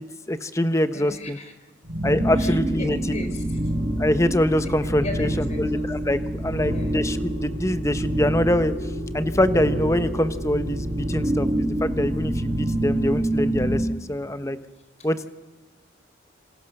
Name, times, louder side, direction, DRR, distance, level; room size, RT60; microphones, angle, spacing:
voice 1, 0.0-1.4 2.0-3.0 4.0-8.7 9.1-14.6 15.0-15.3, left 1 dB, 15° left, 11 dB, 1.1 m, -24 dB
voice 2, 0.9-1.5 2.4-3.4 4.6-4.7 5.0-5.9 6.6-6.9, left 2 dB, 35° left, 6 dB, 4.0 m, -36 dB
sound 1, 1.8-13.9, right 1 dB, 75° right, 5.9 m, -26 dB
27.5 x 27.0 x 6.7 m, 1.1 s
head